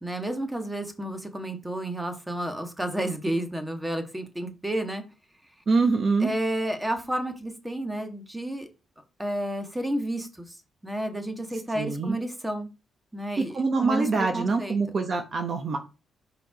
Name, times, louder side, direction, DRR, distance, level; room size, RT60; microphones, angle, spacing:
voice 1, 0.0-5.0 6.2-8.7 9.2-10.6 10.8-12.7 13.1-14.8, right 1 dB, 10° right, 6 dB, 1.6 m, -31 dB
voice 2, 5.7-6.3 11.7-12.2 13.4-15.8, right 4 dB, 45° right, 5 dB, 1.0 m, -25 dB
5.1 x 4.4 x 5.0 m, 0.29 s
cardioid pair, 85°, 0 cm